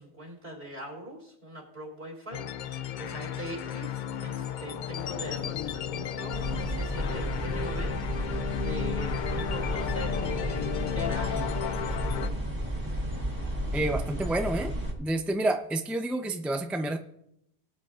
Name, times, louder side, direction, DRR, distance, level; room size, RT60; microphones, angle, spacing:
voice 1, 0.0-12.4, right 1 dB, 60° right, -1 dB, 3.5 m, -42 dB
sound 1, 2.3-12.3, left 9 dB, 55° left, 0.6 m, -34 dB
sound 2, 6.3-14.9, equal, 20° right, 1.6 m, -32 dB
voice 2, 13.7-14.7 15.0-17.0, right 1 dB, ahead, 5 dB, 0.5 m, -29 dB
19.5 x 8.4 x 2.5 m, 0.76 s
omnidirectional pair, 1.1 m